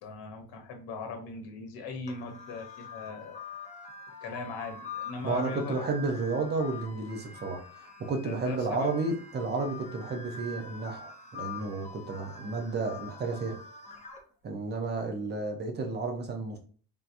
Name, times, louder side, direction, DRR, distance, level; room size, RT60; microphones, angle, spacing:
voice 1, 0.0-3.4 4.2-5.9 8.2-8.9, left 4 dB, 70° left, 0.9 m, -39 dB
sound 1, 2.1-14.2, left 4 dB, 20° left, 0.5 m, -45 dB
voice 2, 5.2-13.6 14.4-16.6, right 3 dB, 25° right, 0.6 m, -32 dB
3.5 x 2.8 x 2.5 m
cardioid pair, 175°, 40 cm